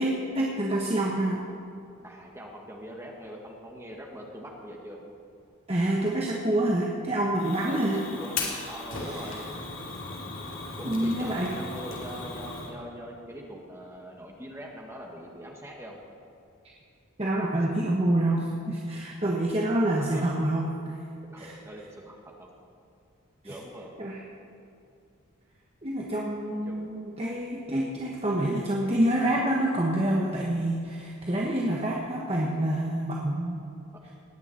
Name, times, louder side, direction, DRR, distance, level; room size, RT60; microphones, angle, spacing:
voice 1, 0.0-1.4 5.7-8.0 9.0-9.4 10.8-11.5 17.2-20.7 21.4-21.5 23.4-23.6 24.0-24.2 25.8-33.6, right 1 dB, 25° right, -2 dB, 1.3 m, -27 dB
voice 2, 2.0-5.0 7.7-8.4 8.7-9.5 10.8-16.0 20.0-20.2 21.3-22.5 23.4-23.9 26.7-26.9, equal, 10° right, 0 dB, 1.6 m, -42 dB
Fire, 7.4-12.7, left 3 dB, 60° left, 2.6 m, -37 dB
19.0 x 7.0 x 8.4 m, 2.5 s
head